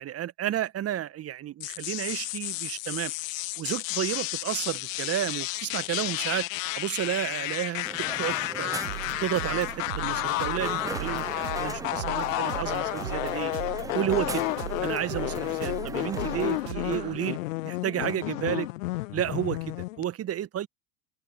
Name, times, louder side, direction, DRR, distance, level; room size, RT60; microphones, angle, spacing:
voice 1, 0.0-3.1 3.6-6.5 6.7-8.8 9.2-13.5 13.9-14.4 14.8-17.4 17.6-18.7 19.1-20.7, right 11 dB, 30° right, 1.9 m, -31 dB
sound 1, 1.6-20.0, left 20 dB, 50° left, 0.9 m, -32 dB
Crowd, 7.8-16.6, right 4 dB, 5° right, 0.6 m, -40 dB
sound 2, 8.8-17.2, right 12 dB, 75° right, 0.7 m, -39 dB
figure-of-eight pair, 80°, 49 cm